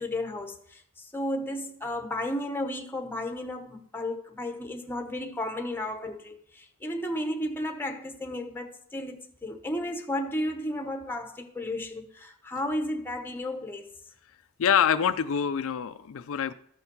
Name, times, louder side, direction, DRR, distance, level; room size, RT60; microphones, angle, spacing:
voice 1, 0.0-13.9, left 1 dB, 10° left, 0.9 m, -33 dB
voice 2, 14.6-16.5, left 8 dB, 65° left, 0.4 m, -25 dB
13.5 x 5.7 x 4.6 m
head